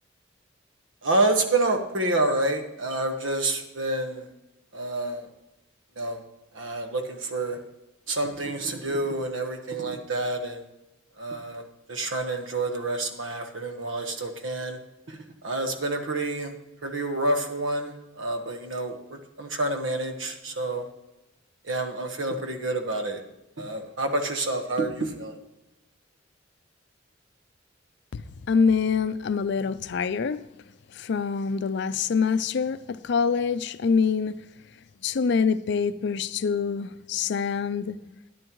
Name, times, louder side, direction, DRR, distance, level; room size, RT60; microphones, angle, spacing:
voice 1, 1.0-4.3 4.7-5.3 6.0-6.2 6.5-7.6 8.1-10.6 11.2-11.6 11.9-14.8 15.1-15.2 15.4-16.5 16.8-20.8 21.7-23.2 23.6-25.4, right 2 dB, 90° right, 1.3 m, -28 dB
voice 2, 28.1-30.4 31.0-34.4 35.0-38.0, left 5 dB, 65° left, 0.4 m, -25 dB
12.5 x 10.0 x 3.1 m
head